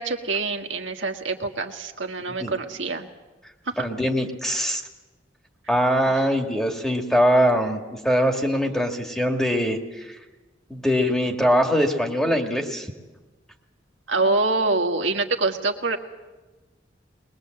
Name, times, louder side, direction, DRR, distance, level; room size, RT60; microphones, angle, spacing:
voice 1, 0.0-3.1 3.7-3.8 6.1-6.2 14.1-16.0, right 3 dB, 80° right, 4 dB, 1.7 m, -25 dB
voice 2, 3.8-4.8 5.7-10.2 10.7-12.9, equal, 5° left, 3 dB, 1.9 m, -22 dB
21.5 x 21.5 x 7.8 m, 1.2 s
head